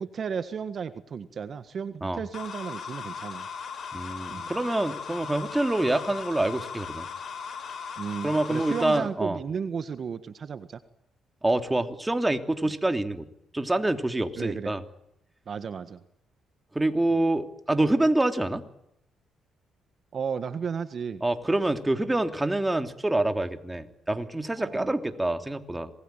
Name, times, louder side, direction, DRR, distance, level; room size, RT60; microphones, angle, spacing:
voice 1, 0.0-3.5 4.3-4.5 8.0-10.8 14.4-14.7 15.5-16.0 20.1-21.2 24.6-24.9, right 6 dB, 50° right, 11 dB, 1.6 m, -34 dB
sound 1, 2.3-9.0, left 6 dB, 55° left, 7.4 m, -38 dB
voice 2, 3.9-7.0 8.2-9.4 11.4-13.3 13.5-14.8 16.7-18.6 21.2-25.9, right 2 dB, 15° right, 8 dB, 3.0 m, -26 dB
27.5 x 20.5 x 9.2 m, 0.78 s
cardioid pair, 90°, 0 cm